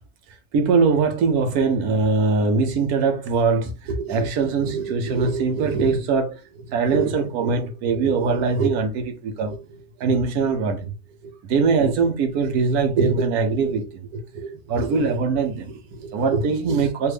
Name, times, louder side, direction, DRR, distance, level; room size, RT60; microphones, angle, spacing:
voice 1, 0.5-10.9 11.2-17.1, right 4 dB, 80° right, 1.3 m, -22 dB
3.4 x 2.6 x 3.2 m
omnidirectional pair, 1.6 m